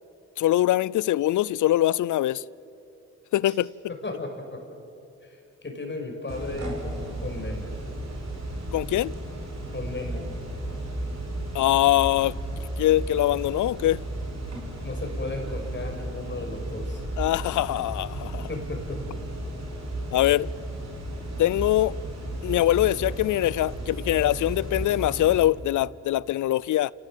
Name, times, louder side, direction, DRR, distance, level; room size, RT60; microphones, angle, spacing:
voice 1, 0.4-2.4 3.3-3.7 8.7-9.1 11.5-12.3 12.8-14.0 17.2-18.5 20.1-20.5 21.4-22.0 22.4-26.9, left 14 dB, 75° left, 0.5 m, -23 dB
voice 2, 3.9-4.6 5.2-7.8 9.7-10.2 14.8-17.0 18.5-19.2, left 2 dB, 35° left, 5.8 m, -35 dB
sound 1, 6.3-25.4, right 1 dB, 55° right, 5.4 m, -34 dB
29.0 x 17.0 x 7.7 m
cardioid pair, 55°, 31 cm